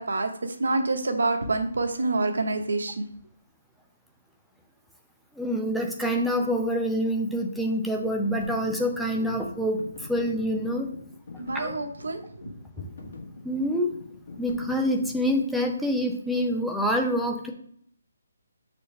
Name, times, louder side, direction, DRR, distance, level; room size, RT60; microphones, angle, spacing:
voice 1, 0.0-3.1 9.2-9.3 11.4-12.5, right 3 dB, 80° right, 5 dB, 1.1 m, -27 dB
voice 2, 5.3-10.9 11.5-11.7 12.8-12.9 13.4-13.9 14.4-17.5, equal, ahead, 0 dB, 0.5 m, -26 dB
sound 1, 8.1-15.4, left 3 dB, 40° left, 1.8 m, -44 dB
6.4 x 4.4 x 3.3 m, 0.63 s
hypercardioid pair, 170°, 0 cm